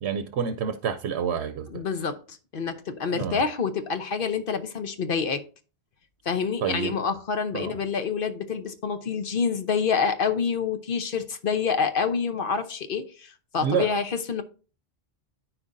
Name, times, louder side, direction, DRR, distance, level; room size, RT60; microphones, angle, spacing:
voice 1, 0.0-1.8 3.1-3.4 6.6-6.9 7.5-7.8 13.6-13.9, right 7 dB, 90° right, 0.9 m, -28 dB
voice 2, 1.7-5.4 6.2-14.4, left 6 dB, 60° left, 1.0 m, -27 dB
13.5 x 4.6 x 2.6 m
omnidirectional pair, 1.1 m